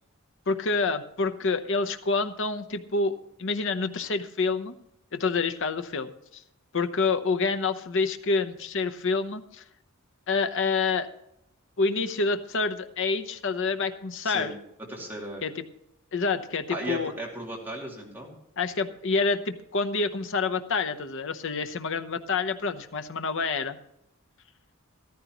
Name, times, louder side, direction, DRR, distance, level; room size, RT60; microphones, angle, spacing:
voice 1, 0.5-4.7 5.1-6.4 6.7-9.6 10.3-11.1 11.8-14.5 15.4-15.6 16.1-17.1 18.6-23.8, left 4 dB, 65° left, 9 dB, 0.8 m, -27 dB
voice 2, 14.2-14.5 14.9-15.4 16.7-18.3, right 1 dB, 10° right, -3 dB, 2.6 m, -36 dB
14.0 x 13.5 x 3.0 m, 0.80 s
head